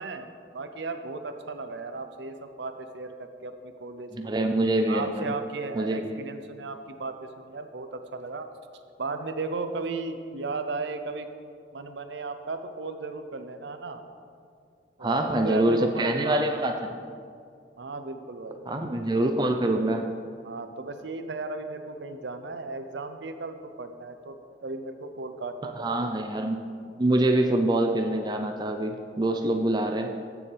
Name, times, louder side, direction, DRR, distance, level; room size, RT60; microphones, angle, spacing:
voice 1, 0.0-4.4 4.9-8.5 9.0-11.3 11.7-14.0 15.0-16.9 17.8-18.7 20.4-24.4 24.6-26.1, right 3 dB, 70° right, 8 dB, 0.6 m, -36 dB
voice 2, 4.1-5.3 5.7-6.2 15.0-16.9 18.7-20.1 25.8-26.6 27.0-30.1, right 1 dB, 25° right, 4 dB, 0.5 m, -25 dB
14.5 x 7.0 x 3.4 m, 2.3 s
head